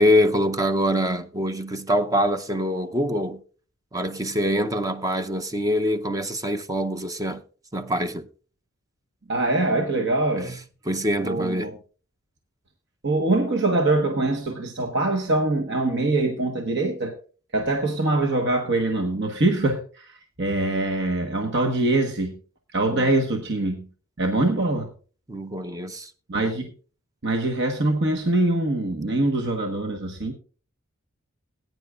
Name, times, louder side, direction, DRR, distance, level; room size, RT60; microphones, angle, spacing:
voice 1, 0.0-3.4 3.9-7.4 7.7-8.3 10.4-10.6 10.9-11.7 22.9-23.1 25.3-26.1, equal, 15° right, 0.6 m, -24 dB
voice 2, 9.3-10.5 11.2-11.7 13.0-17.1 17.5-22.3 22.7-23.9 24.2-24.9 26.3-26.7 27.2-30.3, right 2 dB, 60° right, 1.2 m, -23 dB
19.5 x 9.5 x 2.4 m
head